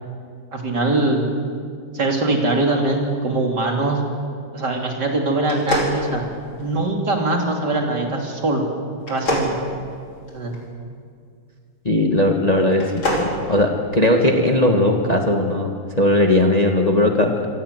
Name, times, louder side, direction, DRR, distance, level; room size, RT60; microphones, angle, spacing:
voice 1, 0.5-1.4 1.9-4.0 4.5-6.2 6.6-8.7 9.1-9.6 10.3-10.6, right 2 dB, 55° right, 1 dB, 3.6 m, -22 dB
sound 1, 5.4-6.8 9.0-10.6 12.7-13.3, equal, 70° left, 5.3 m, -25 dB
voice 2, 11.9-17.5, left 1 dB, 20° left, 2 dB, 1.8 m, -18 dB
26.5 x 18.0 x 8.3 m, 2.2 s
omnidirectional pair, 2.2 m